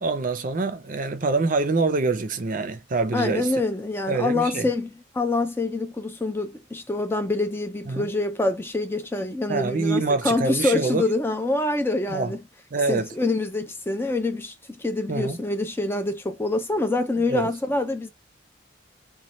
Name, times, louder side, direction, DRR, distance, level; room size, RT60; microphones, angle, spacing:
voice 1, 0.0-3.5 4.1-4.7 7.9-8.1 9.5-11.1 12.1-12.4 12.7-13.1 15.1-15.4 17.3-17.5, right 3 dB, 40° right, 0.5 m, -25 dB
voice 2, 3.1-12.4 12.9-18.1, left 2 dB, 10° left, 0.4 m, -26 dB
3.1 x 2.2 x 4.0 m
head